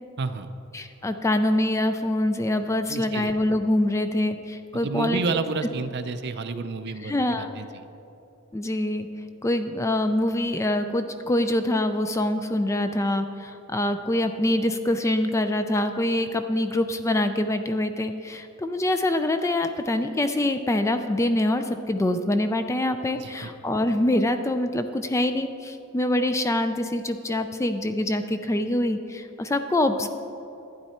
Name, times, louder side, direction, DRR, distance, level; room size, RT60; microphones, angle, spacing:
voice 1, 0.2-0.5 2.9-3.3 4.8-7.8 23.2-23.5, right 4 dB, 50° right, 9 dB, 0.5 m, -30 dB
voice 2, 0.7-5.2 7.0-7.5 8.5-9.1 9.4-30.1, left 1 dB, 15° left, 8 dB, 0.3 m, -25 dB
12.0 x 9.2 x 4.3 m, 2.9 s
head